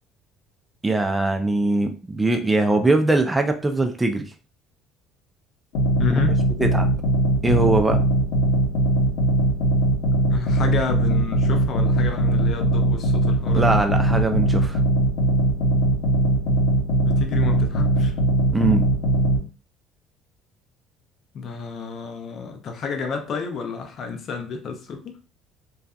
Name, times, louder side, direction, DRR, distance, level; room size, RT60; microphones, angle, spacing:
voice 1, 0.8-4.3 6.1-6.2 6.6-6.9 7.4-8.0 13.5-14.8 18.5-18.9, right 2 dB, 10° right, 0.3 m, -21 dB
sound 1, 5.7-19.4, right 1 dB, 90° left, 0.8 m, -20 dB
voice 2, 6.0-6.5 10.3-13.8 17.0-18.1 21.3-25.2, left 5 dB, 45° left, 0.5 m, -30 dB
2.5 x 2.3 x 2.2 m
cardioid pair, 130°, 0 cm